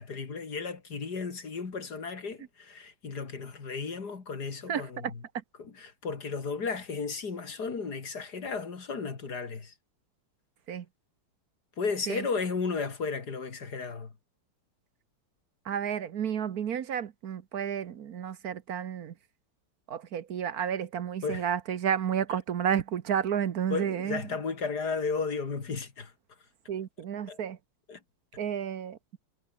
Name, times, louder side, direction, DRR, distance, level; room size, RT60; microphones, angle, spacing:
voice 1, 0.0-5.2 5.6-9.7 11.8-14.1 21.2-21.5 23.7-26.1 27.3-27.4 27.9-28.0, left 5 dB, 45° left, 3.1 m, -34 dB
voice 2, 4.7-5.1 10.7-10.8 12.1-12.3 15.7-19.1 19.9-24.2 26.7-27.6 28.4-29.0, right 8 dB, 55° right, 1.2 m, -31 dB
omnidirectional pair, 2.4 m